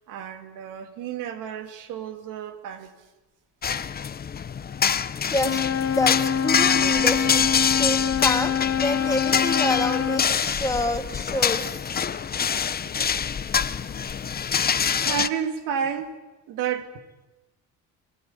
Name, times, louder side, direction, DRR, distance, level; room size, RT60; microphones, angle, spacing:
voice 1, 0.0-2.9 3.7-3.9 7.3-7.4 12.8-12.9 14.8-16.2 16.5-17.3, right 8 dB, 90° right, 2.2 m, -32 dB
sound 1, 3.6-15.3, left 7 dB, 30° left, 0.8 m, -25 dB
Wind instrument woodwind instrument, 5.3-10.3, left 7 dB, 45° left, 1.5 m, -25 dB
voice 2, 5.9-11.8, left 2 dB, 10° left, 2.5 m, -28 dB
24.5 x 16.5 x 9.7 m
cardioid pair, 105°, 31 cm